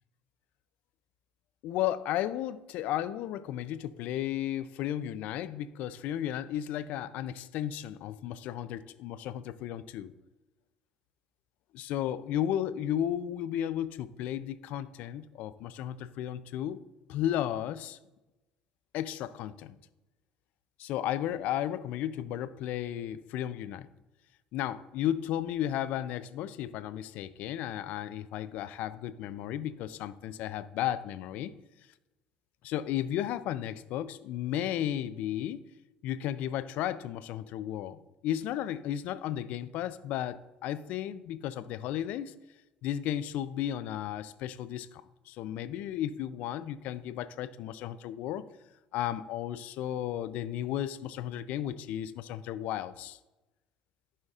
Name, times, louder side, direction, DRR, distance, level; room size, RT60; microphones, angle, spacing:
voice 1, 1.6-10.1 11.7-16.8 17.1-18.0 18.9-19.7 20.8-23.9 24.5-31.5 32.6-35.6 36.0-42.3 42.8-48.5 48.9-53.2, left 11 dB, 70° left, 14 dB, 0.4 m, -34 dB
11.0 x 5.1 x 2.4 m, 1.0 s
supercardioid pair, 80°, 3 cm